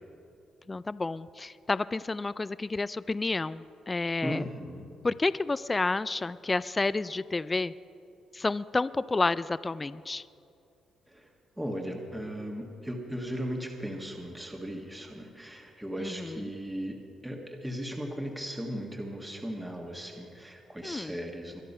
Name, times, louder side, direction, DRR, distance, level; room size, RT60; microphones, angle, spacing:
voice 1, 0.7-4.4 5.0-7.7 8.4-10.2 16.0-16.3 20.8-21.1, left 3 dB, 20° left, 16 dB, 0.3 m, -30 dB
voice 2, 4.2-4.9 11.1-11.2 11.6-21.6, equal, 10° right, 1 dB, 1.6 m, -37 dB
22.5 x 11.0 x 5.5 m, 2.7 s
cardioid pair, 90°, 0 cm